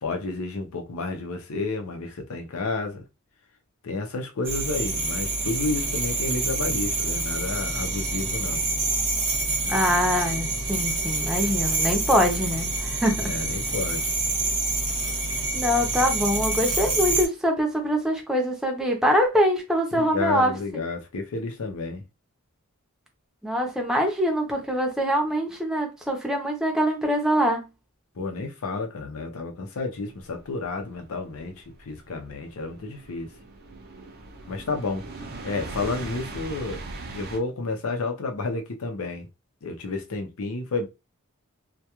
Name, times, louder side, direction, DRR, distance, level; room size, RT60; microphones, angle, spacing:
voice 1, 0.0-3.0 3.8-8.6 13.2-14.1 19.9-22.0 28.2-33.3 34.5-35.0 35.4-36.8 37.1-39.3 39.6-40.9, left 3 dB, 80° left, 0.6 m, -31 dB
sound 1, 4.4-17.3, right 2 dB, 65° right, 0.9 m, -27 dB
voice 2, 9.7-13.4 15.5-20.5 23.4-27.7, equal, 5° right, 0.6 m, -24 dB
sound 2, 30.4-37.4, right 3 dB, 45° right, 0.5 m, -40 dB
2.3 x 2.2 x 2.9 m
head